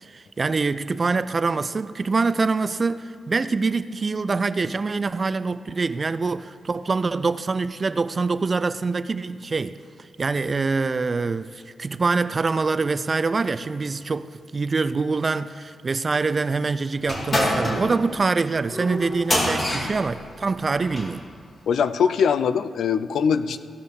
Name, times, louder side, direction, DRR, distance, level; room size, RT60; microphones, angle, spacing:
voice 1, 0.0-9.8 10.2-21.2, right 4 dB, 40° right, 0.4 m, -25 dB
sound 1, 17.0-21.2, equal, 40° left, 2.5 m, -26 dB
voice 2, 21.7-23.6, left 6 dB, 80° left, 0.4 m, -22 dB
16.0 x 5.4 x 6.4 m
cardioid pair, 85°, 0 cm